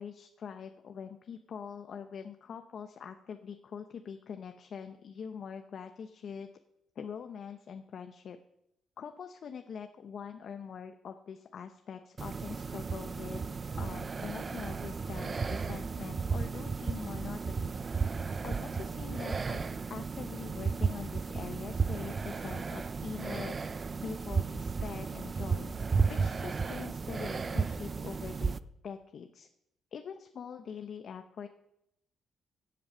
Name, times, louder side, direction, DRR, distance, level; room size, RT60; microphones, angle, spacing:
voice 1, 0.0-6.5 7.0-8.4 9.0-13.4 13.8-17.7 18.4-19.6 19.9-23.5 24.0-25.7 26.1-28.6 28.8-29.5 29.9-31.5, left 7 dB, 60° left, 7 dB, 0.8 m, -43 dB
sound 1, 12.2-28.6, right 5 dB, 35° right, 0.5 m, -34 dB
15.5 x 7.8 x 5.5 m, 0.81 s
cardioid pair, 90°, 0 cm